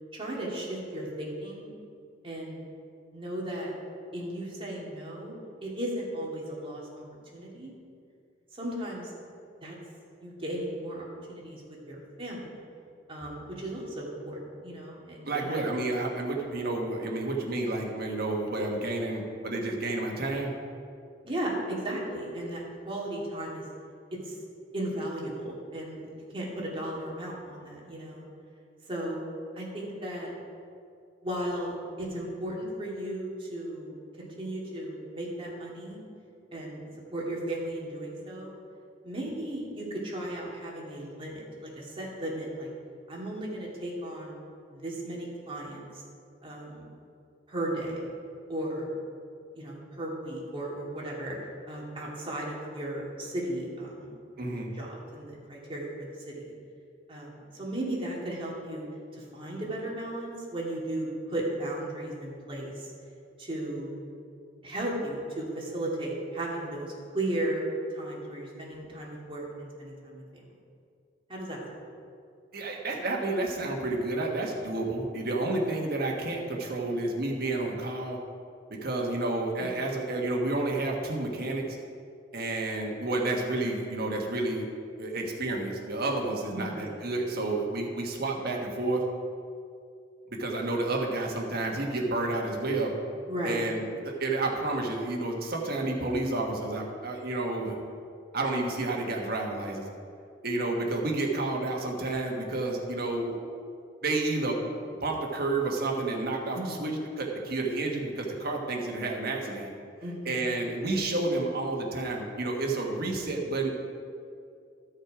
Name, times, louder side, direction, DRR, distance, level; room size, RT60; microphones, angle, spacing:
voice 1, 0.1-1.7 2.2-2.6 3.1-3.7 4.1-5.3 5.6-7.0 7.3-7.7 8.5-9.1 9.6-9.8 10.2-12.5 13.1-15.6 21.2-23.6 24.2-24.3 24.7-28.2 28.9-29.2 29.5-30.3 31.2-36.0 36.5-36.8 37.1-38.5 39.0-42.7 43.1-44.3 44.7-46.0 46.4-46.9 47.5-48.1 48.5-48.9 49.5-51.4 51.7-54.2 54.7-56.5 57.1-58.9 59.1-62.9 63.4-63.9 64.6-67.6 67.9-70.2 71.3-71.6 79.6-79.7 86.5-86.8 93.3-93.6 106.5-106.8 110.0-110.5, right 1 dB, 30° right, -3 dB, 2.3 m, -35 dB
voice 2, 15.2-20.6 54.4-54.7 72.5-78.2 78.7-81.8 82.3-84.6 85.0-89.0 90.4-92.9 93.4-97.8 98.3-99.8 100.4-103.4 104.0-104.6 105.0-109.7 110.2-113.7, right 2 dB, 55° right, 0 dB, 1.5 m, -30 dB
13.5 x 6.5 x 4.9 m, 2.4 s
head